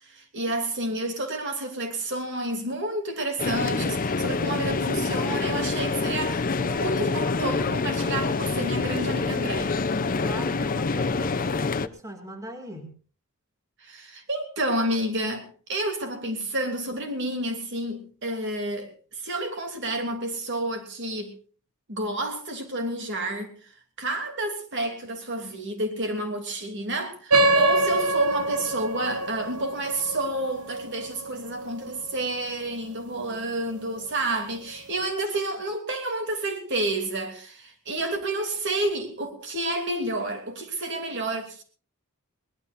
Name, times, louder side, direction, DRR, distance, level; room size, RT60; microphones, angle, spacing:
voice 1, 0.0-9.8 13.8-21.3 21.9-23.5 24.0-41.6, right 1 dB, 55° right, 3.0 m, -30 dB
sound 1, 3.4-11.9, left 4 dB, 40° left, 0.7 m, -26 dB
voice 2, 9.9-13.0, right 1 dB, 15° right, 2.5 m, -40 dB
sound 2, 27.3-32.3, right 2 dB, 90° right, 1.1 m, -25 dB
22.5 x 19.5 x 2.6 m
head